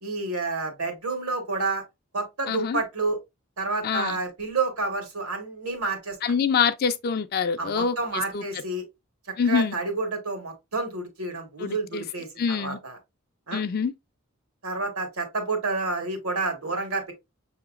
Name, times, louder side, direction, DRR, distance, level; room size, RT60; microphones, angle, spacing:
voice 1, 0.0-1.8 2.1-3.2 3.6-6.2 7.6-8.8 9.4-13.0 13.5-13.6 14.6-17.1, right 3 dB, 85° right, 1.5 m, -29 dB
voice 2, 2.5-2.8 3.8-4.2 6.2-8.0 8.3-8.4 9.4-9.8 11.6-12.0 12.4-12.8 13.5-13.9, left 6 dB, 45° left, 0.3 m, -25 dB
6.1 x 2.8 x 2.4 m
head